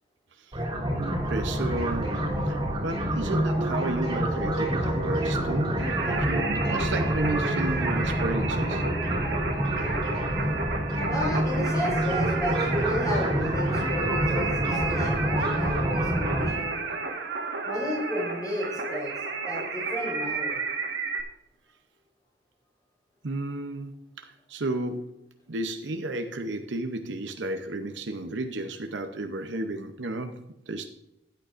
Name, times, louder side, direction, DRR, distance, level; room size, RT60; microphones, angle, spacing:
sound 1, 0.5-16.5, right 1 dB, 25° right, 3.1 m, -27 dB
voice 1, 0.9-2.2 2.4-8.8 23.2-25.2 25.5-30.9, right 2 dB, 90° right, 6 dB, 0.8 m, -33 dB
Singing, 5.8-21.2, right 4 dB, 75° right, 1.6 m, -32 dB
voice 2, 11.1-16.8 17.7-19.1 19.5-20.5, equal, 20° left, -2 dB, 4.2 m, -33 dB
15.0 x 9.1 x 2.6 m, 0.86 s
head